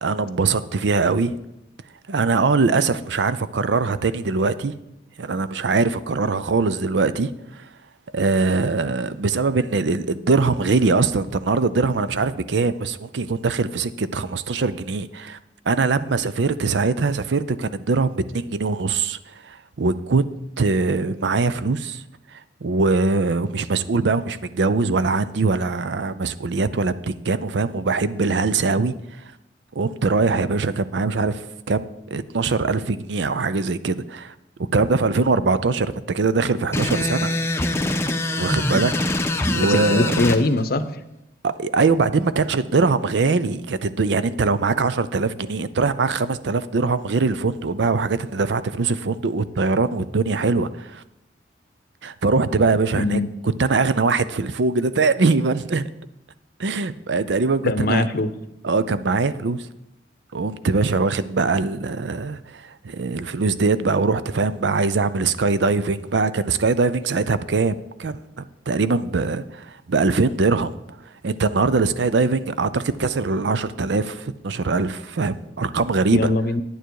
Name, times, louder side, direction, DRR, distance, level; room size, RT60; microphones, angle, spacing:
voice 1, 0.0-1.3 2.1-4.7 5.2-7.3 8.1-15.4 15.7-19.2 19.4-20.3 20.6-22.0 22.6-28.9 29.8-34.3 34.7-37.3 38.4-38.9 39.5-40.1 41.4-51.0 52.0-55.8 56.6-58.1 58.6-59.6 60.3-70.7 71.2-76.3, right 4 dB, 70° right, 14 dB, 0.5 m, -22 dB
sound 1, 36.7-40.4, left 1 dB, 15° left, 0.6 m, -23 dB
voice 2, 39.6-41.0 52.9-53.3 57.6-58.3 76.1-76.6, left 2 dB, 55° left, 12 dB, 0.7 m, -21 dB
10.0 x 9.2 x 4.7 m, 0.88 s
head